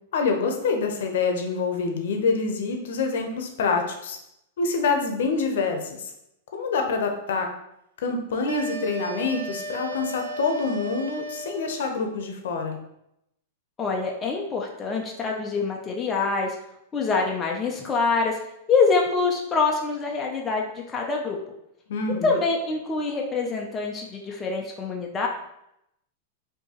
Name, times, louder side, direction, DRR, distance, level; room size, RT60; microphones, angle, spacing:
voice 1, 0.1-4.2 4.6-6.1 6.5-7.5 8.0-12.8 21.9-22.4, left 4 dB, 70° left, 4 dB, 0.7 m, -26 dB
sound 1, 8.5-12.0, right 2 dB, 90° right, 0.4 m, -35 dB
voice 2, 13.8-16.6 16.9-18.4 18.7-21.4 22.2-25.3, left 4 dB, 15° left, 0 dB, 0.3 m, -25 dB
4.4 x 2.7 x 2.9 m, 0.80 s
supercardioid pair, 170°, 0 cm